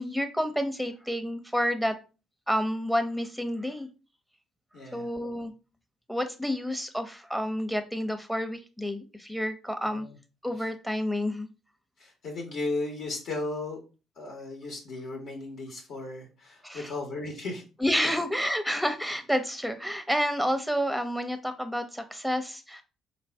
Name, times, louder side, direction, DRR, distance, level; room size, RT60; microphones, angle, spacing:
voice 1, 0.0-1.9 2.5-3.9 4.9-5.5 6.1-10.1 10.4-11.5 16.6-16.9 17.8-22.8, equal, ahead, 8 dB, 0.7 m, -29 dB
voice 2, 4.7-5.1 9.8-10.1 12.0-13.8 14.2-17.6 18.0-18.1, left 2 dB, 60° left, 0 dB, 1.1 m, -35 dB
4.1 x 2.5 x 3.3 m, 0.31 s
figure-of-eight pair, 45°, 0 cm